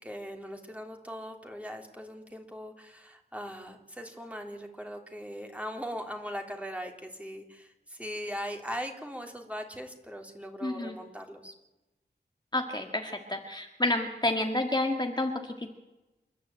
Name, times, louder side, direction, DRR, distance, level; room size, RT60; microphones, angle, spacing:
voice 1, 0.0-11.5, equal, 5° right, 4 dB, 3.4 m, -40 dB
voice 2, 10.6-10.9 12.5-15.7, left 2 dB, 25° left, 3 dB, 1.9 m, -30 dB
28.0 x 12.0 x 9.0 m, 1.0 s
wide cardioid pair, 65°, 18 cm